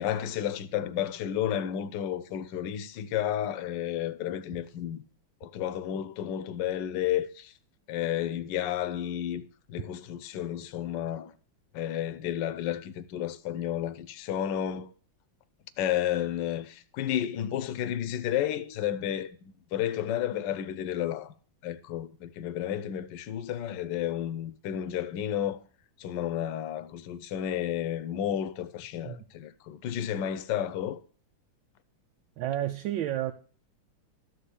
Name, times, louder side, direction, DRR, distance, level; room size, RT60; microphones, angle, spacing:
voice 1, 0.0-5.0 5.4-7.5 7.9-9.4 9.7-11.3 11.7-14.9 15.8-21.3 21.6-25.6 26.0-31.0, left 10 dB, 70° left, 1.3 m, -32 dB
voice 2, 4.3-4.6 29.0-29.2 32.4-33.3, right 12 dB, 80° right, 1.4 m, -32 dB
13.0 x 4.4 x 8.3 m
omnidirectional pair, 2.1 m